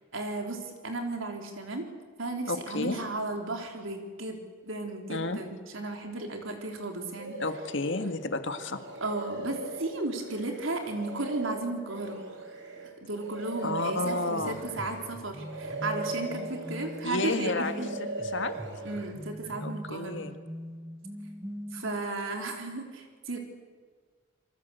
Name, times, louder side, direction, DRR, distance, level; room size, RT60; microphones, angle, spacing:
voice 1, 0.1-1.9 2.2-4.4 4.6-7.4 9.0-12.2 13.0-18.0 18.8-20.2 21.7-23.4, right 2 dB, 80° right, 3 dB, 4.0 m, -34 dB
voice 2, 2.5-3.0 5.1-5.4 7.4-8.8 13.6-14.6 17.0-17.8 18.2-18.5 19.6-20.4, left 3 dB, 65° left, 8 dB, 2.0 m, -31 dB
sound 1, 7.2-8.1 8.5-15.2 15.4-17.4 17.7-19.1, right 3 dB, 65° right, 5.5 m, -39 dB
sound 2, 14.4-22.0, equal, 15° right, 1.4 m, -42 dB
28.5 x 24.0 x 8.2 m, 1.5 s
head